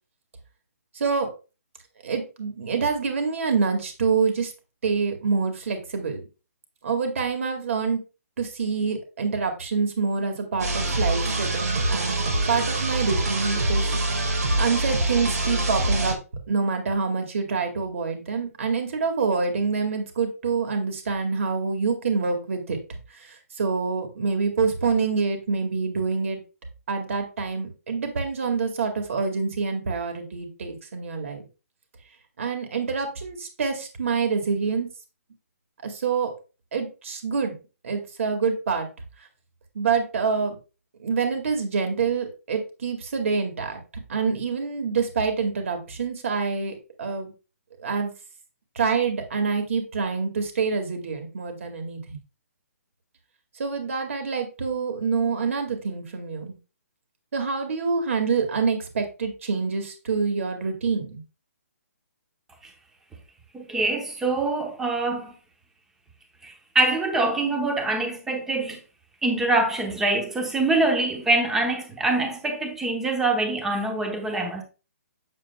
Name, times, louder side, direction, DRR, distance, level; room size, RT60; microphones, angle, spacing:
voice 1, 0.9-1.3 2.0-4.5 4.8-6.2 6.8-8.0 8.4-13.9 14.6-16.2 16.5-22.8 23.1-26.4 26.9-31.5 32.4-34.9 35.8-36.3 36.7-37.5 37.8-38.9 39.7-40.6 41.0-43.8 44.1-47.3 47.8-48.1 48.8-52.2 53.6-56.5 57.3-61.2, right 5 dB, 55° right, 2.1 m, -26 dB
sound 1, 10.6-16.1, right 2 dB, 85° right, 2.1 m, -25 dB
voice 2, 63.5-65.3 66.4-68.8 69.2-74.6, right 2 dB, 5° right, 0.9 m, -24 dB
7.8 x 7.2 x 2.3 m
hypercardioid pair, 170°, 8 cm